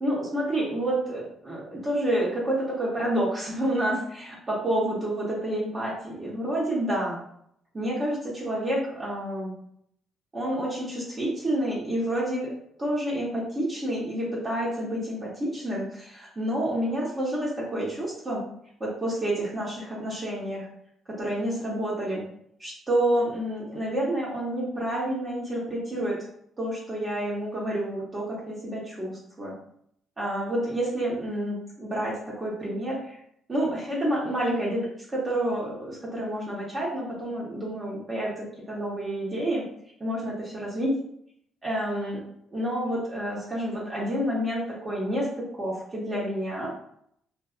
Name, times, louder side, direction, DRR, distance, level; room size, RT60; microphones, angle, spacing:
voice 1, 0.0-7.2 7.7-9.5 10.3-18.4 18.8-20.7 21.1-22.2 22.6-26.2 26.6-29.5 30.2-33.2 33.5-34.8 35.1-39.6 40.0-40.9 41.6-42.2 42.5-46.7, right 1 dB, 30° right, -5 dB, 0.8 m, -29 dB
2.5 x 2.4 x 2.4 m, 0.69 s
cardioid pair, 90°, 0 cm